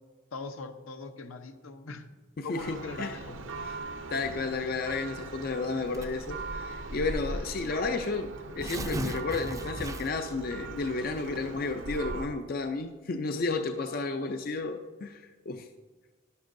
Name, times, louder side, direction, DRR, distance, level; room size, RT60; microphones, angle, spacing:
voice 1, 0.3-2.1 2.4-3.7, left 3 dB, 80° left, 7 dB, 0.8 m, -41 dB
voice 2, 2.4-3.2 3.6-3.8 4.1-15.7, left 3 dB, 45° left, 7 dB, 0.4 m, -32 dB
Church bell, 2.6-12.3, right 3 dB, 65° right, 0.7 m, -40 dB
Tearing, 5.9-6.3 7.2-7.3 7.6-7.7 8.4-10.3, right 1 dB, 15° right, 0.4 m, -36 dB
11.5 x 11.0 x 2.6 m, 1.4 s
head